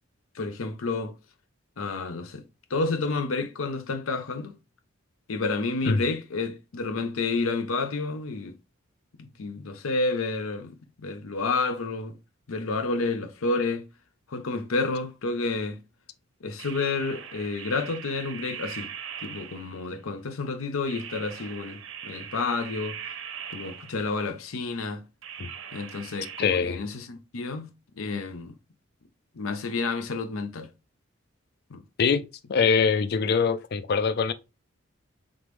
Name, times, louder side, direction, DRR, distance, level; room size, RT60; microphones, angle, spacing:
voice 1, 0.3-1.1 1.8-2.4 2.7-4.6 5.3-8.5 9.2-10.7 11.0-12.1 12.5-13.8 14.3-15.8 16.4-18.9 19.2-23.0 23.5-25.0 25.7-27.7 28.0-28.5 29.3-30.7 31.7-31.8, left 3 dB, 90° left, 0.6 m, -30 dB
sound 1, 16.6-20.0 20.9-24.3 25.2-26.5, right 8 dB, 75° right, 0.7 m, -40 dB
voice 2, 26.4-26.8 32.0-32.2 32.5-34.3, left 5 dB, 50° left, 0.4 m, -23 dB
3.8 x 3.6 x 3.1 m
head